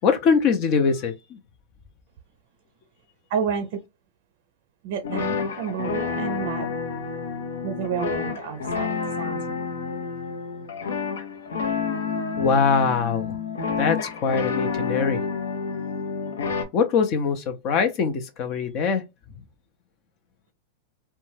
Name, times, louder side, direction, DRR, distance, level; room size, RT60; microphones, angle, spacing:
voice 1, 0.0-1.4 12.4-13.4 13.8-15.2 16.7-19.0, left 5 dB, 45° left, 0.6 m, -22 dB
voice 2, 3.3-3.8 4.8-6.7 7.6-9.5, right 7 dB, 60° right, 0.4 m, -30 dB
sound 1, 5.0-16.6, left 5 dB, 85° left, 0.7 m, -29 dB
2.6 x 2.2 x 3.1 m
hypercardioid pair, 120°, 0 cm